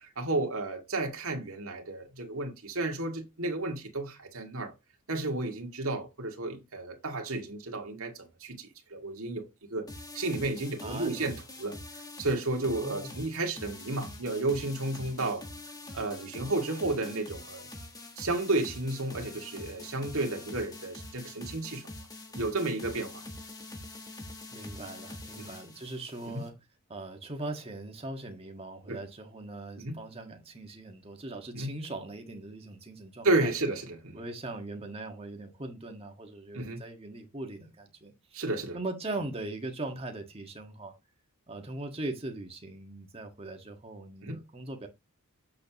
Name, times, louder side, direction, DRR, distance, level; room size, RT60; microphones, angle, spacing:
voice 1, 0.0-4.7 5.1-9.9 10.1-15.4 15.9-17.7 18.2-21.8 22.3-23.2 25.4-25.5 26.3-26.4 28.9-29.0 29.8-30.0 31.5-31.7 33.2-34.2 36.5-36.8 38.3-38.8 44.2-44.4, right 2 dB, 75° right, 2.1 m, -32 dB
sound 1, 9.9-26.5, left 2 dB, 15° left, 1.5 m, -45 dB
voice 2, 10.8-11.3 12.8-13.1 24.5-26.5 26.9-33.5 34.1-38.4 38.7-40.9 41.5-44.9, right 2 dB, 25° right, 1.6 m, -40 dB
7.6 x 6.7 x 3.0 m
head